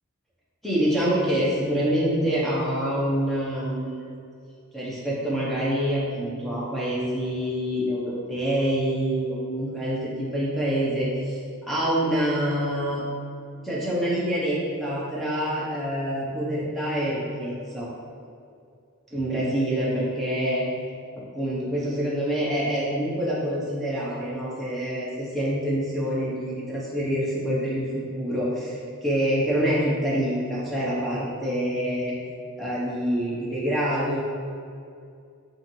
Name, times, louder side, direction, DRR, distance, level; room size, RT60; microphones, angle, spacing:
voice 1, 0.6-4.1 4.7-13.0 13.6-17.9 19.1-20.7 21.3-32.1 32.6-34.2, equal, ahead, -7 dB, 0.7 m, -26 dB
6.8 x 2.5 x 3.0 m, 2.4 s
head